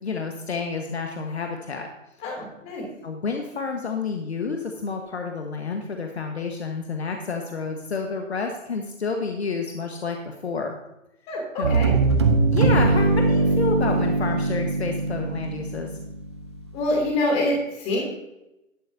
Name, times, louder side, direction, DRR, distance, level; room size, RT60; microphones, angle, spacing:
voice 1, 0.0-1.9 3.0-10.7 11.6-11.7 12.5-15.9, left 4 dB, 50° left, 3 dB, 1.4 m, -29 dB
voice 2, 2.2-2.8 11.3-11.9 16.7-18.0, left 1 dB, 15° left, -1 dB, 2.9 m, -25 dB
Double bass walking, 11.6-16.5, right 3 dB, 20° right, 0.6 m, -21 dB
18.5 x 7.5 x 2.7 m, 0.91 s
figure-of-eight pair, 140°, 40 cm